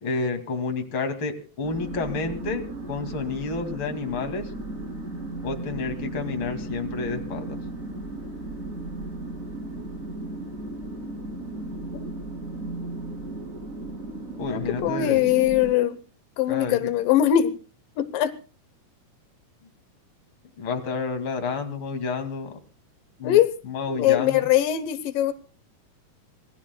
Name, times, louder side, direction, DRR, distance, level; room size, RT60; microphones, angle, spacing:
voice 1, 0.0-4.5 5.4-7.6 14.4-15.3 16.5-16.9 20.6-22.6 23.2-24.4, left 4 dB, 40° left, 5 dB, 2.8 m, -30 dB
sound 1, 1.6-15.7, right 2 dB, 25° right, 2.8 m, -35 dB
voice 2, 14.5-16.0 16.4-17.5 18.0-18.3 23.2-23.5 24.0-25.3, left 11 dB, 85° left, 11 dB, 2.6 m, -21 dB
26.5 x 19.5 x 2.2 m, 0.37 s
omnidirectional pair, 3.8 m